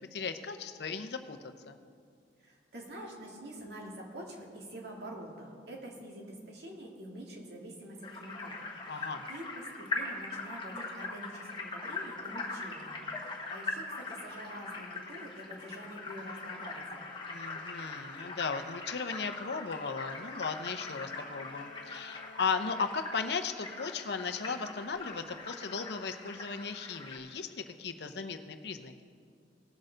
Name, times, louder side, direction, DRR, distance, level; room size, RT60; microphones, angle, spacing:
voice 1, 0.0-1.8 8.9-9.2 17.3-29.0, left 5 dB, 65° left, 8 dB, 0.7 m, -36 dB
voice 2, 2.4-17.1, right 1 dB, 65° right, -2 dB, 1.9 m, -46 dB
sound 1, 8.0-27.2, left 3 dB, 25° left, 1.1 m, -41 dB
Bowed string instrument, 19.7-23.8, left 3 dB, 90° left, 1.1 m, -53 dB
18.5 x 6.5 x 3.9 m, 2.2 s
head